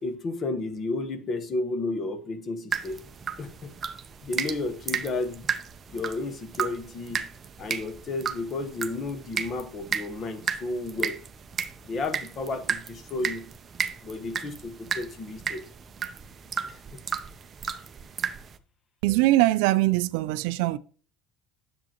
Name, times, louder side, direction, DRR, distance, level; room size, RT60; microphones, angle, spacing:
voice 1, 0.0-3.0 3.4-3.7 4.2-5.5 5.9-11.2 11.8-13.5 14.0-15.6 16.6-17.0, left 2 dB, 25° left, 1.0 m, -32 dB
sound 1, 2.7-18.6, right 7 dB, 25° right, 0.6 m, -34 dB
voice 2, 19.0-20.8, right 17 dB, 75° right, 0.4 m, -22 dB
10.0 x 7.3 x 2.9 m
cardioid pair, 160°, 0 cm